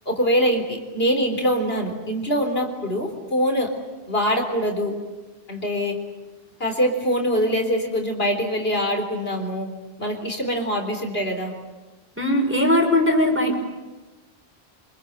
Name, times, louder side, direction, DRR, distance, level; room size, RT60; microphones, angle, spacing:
voice 1, 0.1-3.7 4.1-4.9 5.5-6.0 6.6-9.7 10.0-11.5, equal, 65° left, 3 dB, 4.0 m, -23 dB
voice 2, 12.2-13.6, left 1 dB, 10° right, 2 dB, 5.3 m, -19 dB
27.5 x 25.5 x 7.9 m, 1.2 s
omnidirectional pair, 1.1 m